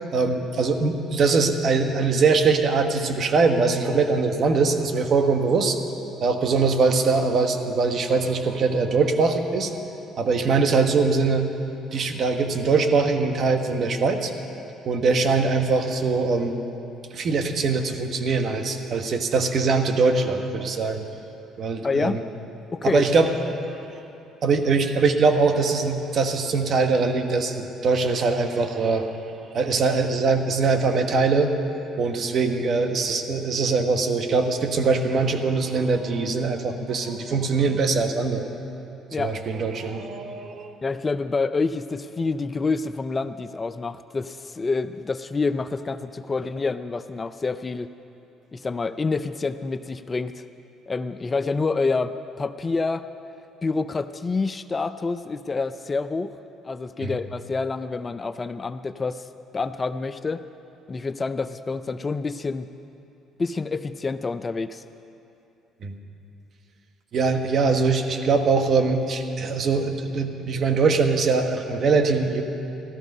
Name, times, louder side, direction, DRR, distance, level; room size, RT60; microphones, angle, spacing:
voice 1, 0.1-5.8 6.2-9.7 10.2-11.5 11.9-14.3 14.8-16.6 17.1-21.0 21.6-22.2 22.8-23.3 24.4-29.1 29.5-31.5 32.0-38.5 39.2-40.7 57.0-57.1 65.8-65.9 67.1-72.4, right 4 dB, 55° right, 6 dB, 1.3 m, -22 dB
voice 2, 21.8-22.2 22.7-23.1 39.1-39.3 40.8-47.9 48.5-50.4 50.9-53.1 53.6-56.3 56.6-59.3 59.5-60.4 60.9-62.7 63.4-64.8, left 4 dB, 30° left, 12 dB, 0.4 m, -27 dB
15.5 x 13.0 x 5.4 m, 2.8 s
supercardioid pair, 80°, 0 cm